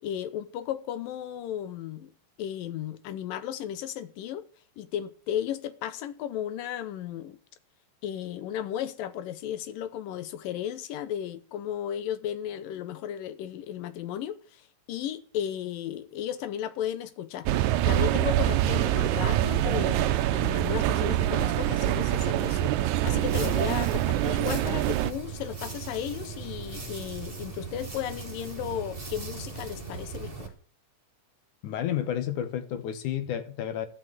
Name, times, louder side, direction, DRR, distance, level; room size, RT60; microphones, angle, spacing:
voice 1, 0.0-2.1 2.4-4.4 4.8-7.4 8.0-17.5 17.9-22.7 23.0-30.5, left 10 dB, 90° left, 2.7 m, -34 dB
sound 1, 17.5-25.1, right 13 dB, 75° right, 1.9 m, -25 dB
sound 2, 23.0-30.5, right 5 dB, 15° right, 2.5 m, -38 dB
voice 2, 31.6-33.9, left 10 dB, 70° left, 2.4 m, -31 dB
13.0 x 6.4 x 9.3 m
omnidirectional pair, 3.9 m